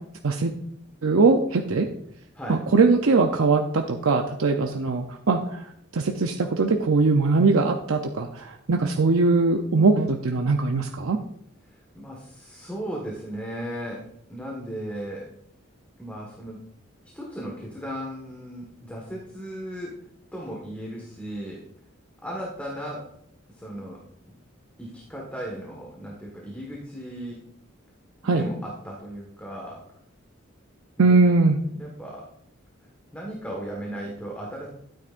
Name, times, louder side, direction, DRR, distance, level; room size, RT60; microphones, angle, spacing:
voice 1, 1.0-1.9 2.5-5.7 5.9-11.2 28.2-28.4 31.0-31.6, right 3 dB, 75° right, 4 dB, 0.6 m, -21 dB
voice 2, 11.7-15.3 16.0-16.6 17.0-19.9 20.3-21.6 22.2-23.0 23.5-24.0 24.8-27.4 28.2-29.8 31.0-31.2 31.7-32.3 33.1-34.7, right 1 dB, 5° left, -2 dB, 1.5 m, -36 dB
13.0 x 9.1 x 2.5 m, 0.74 s
head